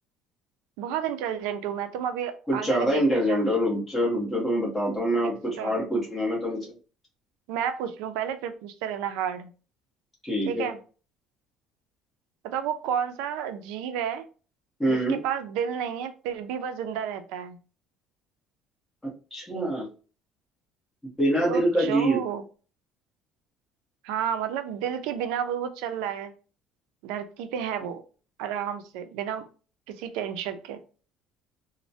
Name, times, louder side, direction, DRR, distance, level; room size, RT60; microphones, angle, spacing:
voice 1, 0.8-3.4 5.6-5.7 7.5-9.5 10.5-10.8 12.4-14.3 14.9-17.6 21.5-22.4 24.0-26.3 27.0-28.0 28.4-29.4 29.9-30.8, right 8 dB, 85° right, 9 dB, 0.4 m, -31 dB
voice 2, 2.5-6.7 10.2-10.7 14.8-15.2 19.3-19.9 21.2-22.2, equal, 10° left, -5 dB, 1.1 m, -25 dB
3.1 x 2.1 x 2.6 m, 0.37 s
cardioid pair, 180°, 0 cm